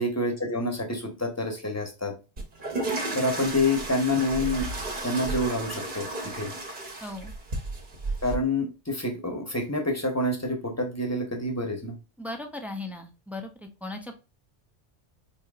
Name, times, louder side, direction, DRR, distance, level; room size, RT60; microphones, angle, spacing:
voice 1, 0.0-2.1 3.1-4.7 5.0-6.1 6.3-6.5 8.2-11.9, left 1 dB, 15° left, 3 dB, 0.8 m, -27 dB
sound 1, 2.4-8.4, right 2 dB, 45° right, 1.1 m, -33 dB
voice 2, 7.0-7.3 12.2-13.5 13.8-14.2, left 2 dB, 5° right, 4 dB, 0.3 m, -37 dB
5.1 x 2.8 x 2.3 m, 0.30 s
omnidirectional pair, 1.2 m